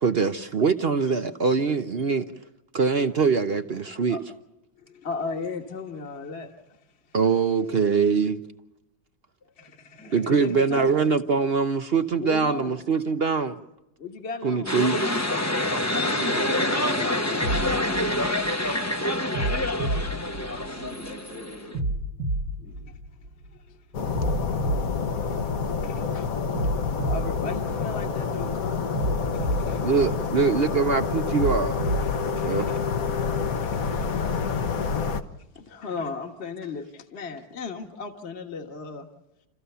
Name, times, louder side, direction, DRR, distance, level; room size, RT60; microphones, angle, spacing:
voice 1, 0.0-2.3 2.7-4.2 7.1-8.4 10.1-13.5 14.4-15.0 29.8-31.8 32.4-32.7, right 5 dB, 50° right, 0.8 m, -23 dB
voice 2, 4.8-6.5 9.6-11.0 12.2-12.7 14.0-14.7 17.8-18.2 20.2-20.6 21.1-21.2 22.9-23.0 23.5-23.8 25.1-25.5 25.8-26.3 26.9-28.8 29.3-30.0 32.4-32.8 33.6-34.3 35.6-39.1, left 4 dB, 35° left, 1.7 m, -36 dB
sound 1, 14.7-21.8, left 1 dB, 15° left, 0.7 m, -26 dB
voice 3, 15.2-18.1 20.8-21.9 22.6-22.7, equal, 75° left, 7.9 m, -40 dB
sound 2, 17.4-18.7 19.3-21.0 21.7-23.5 24.1-25.9 26.5-28.3 28.9-30.6 31.3-32.7, right 1 dB, 75° right, 2.1 m, -30 dB
sound 3, 23.9-35.2, left 5 dB, 55° left, 1.4 m, -28 dB
29.0 x 14.5 x 6.9 m
omnidirectional pair, 1.9 m